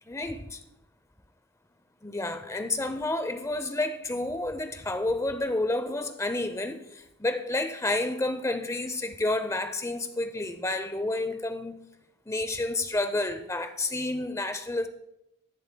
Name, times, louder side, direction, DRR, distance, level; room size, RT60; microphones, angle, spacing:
voice 1, 0.1-0.6 2.0-11.8 12.3-14.9, left 2 dB, 15° left, 0.6 m, -30 dB
21.0 x 7.3 x 2.2 m
head